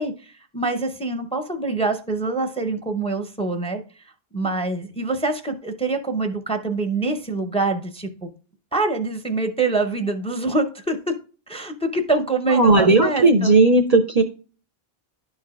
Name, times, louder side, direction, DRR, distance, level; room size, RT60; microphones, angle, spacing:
voice 1, 0.0-3.8 4.3-8.3 8.7-11.0 11.5-13.6, right 3 dB, 5° left, 7 dB, 0.6 m, -25 dB
voice 2, 12.5-14.2, right 2 dB, 50° right, 8 dB, 0.6 m, -15 dB
11.0 x 4.8 x 2.4 m, 0.38 s
omnidirectional pair, 1.0 m